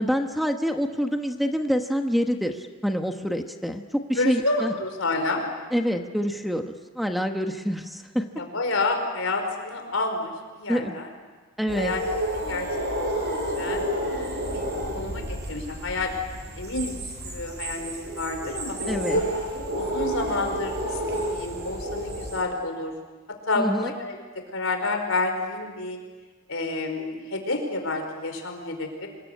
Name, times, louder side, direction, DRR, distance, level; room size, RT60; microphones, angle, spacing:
voice 1, 0.0-4.7 5.7-8.2 10.7-11.0 11.6-11.9 18.9-19.2 23.6-23.9, equal, ahead, 5 dB, 1.1 m, -26 dB
voice 2, 4.2-5.4 8.4-11.1 11.8-12.0 12.3-12.7 13.0-13.1 13.6-13.9 14.5-16.1 16.5-19.2 19.7-22.9 23.5-24.2 24.5-26.0 26.5-29.1, left 2 dB, 70° left, 5 dB, 5.0 m, -29 dB
sound 1, 11.7-22.4, right 1 dB, 50° right, 7.9 m, -31 dB
26.0 x 22.5 x 9.9 m, 1.4 s
head